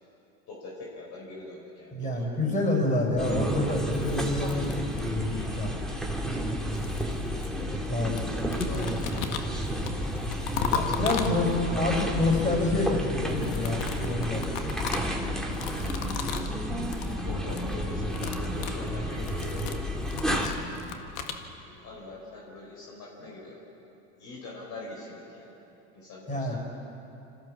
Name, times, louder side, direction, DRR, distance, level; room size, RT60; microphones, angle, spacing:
voice 1, 0.5-2.8 6.3-6.6 7.6-9.6 10.7-11.1 15.1-16.6 17.1-19.8 20.3-21.0 21.6-23.6 24.2-25.5 25.9-26.6, left 2 dB, 55° left, -3 dB, 5.1 m, -44 dB
voice 2, 1.9-5.7 7.9-8.2 10.7-14.4 26.3-26.6, left 2 dB, 20° left, 0 dB, 6.6 m, -27 dB
sound 1, 3.2-20.5, equal, ahead, 2.7 m, -31 dB
sound 2, 3.8-5.4 6.3-7.9 8.2-11.8 13.2-16.6 16.8-17.2 17.4-17.7 18.0-21.4, left 7 dB, 70° left, 1.8 m, -36 dB
26.5 x 15.0 x 7.3 m, 2.9 s
hypercardioid pair, 90°, 37 cm